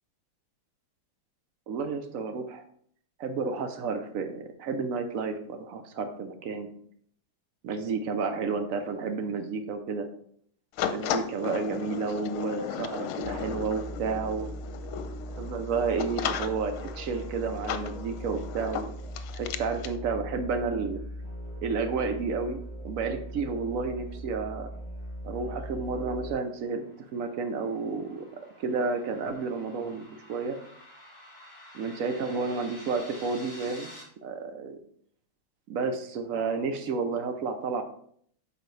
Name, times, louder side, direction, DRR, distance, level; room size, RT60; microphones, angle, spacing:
voice 1, 1.7-2.6 3.2-6.7 7.6-10.1 10.9-14.5 15.4-18.9 19.3-21.0 21.6-24.7 25.2-26.8 27.1-28.3 28.6-30.6 31.7-33.9 34.2-34.8 35.7-37.8, right 4 dB, 75° right, 7 dB, 0.7 m, -31 dB
sound 1, 10.8-20.0, left 9 dB, 80° left, 1.4 m, -36 dB
sound 2, 13.2-26.3, equal, 45° right, 3.0 m, -40 dB
sound 3, 26.3-34.0, left 1 dB, 30° left, 2.3 m, -50 dB
8.2 x 5.4 x 3.2 m, 0.62 s
omnidirectional pair, 2.3 m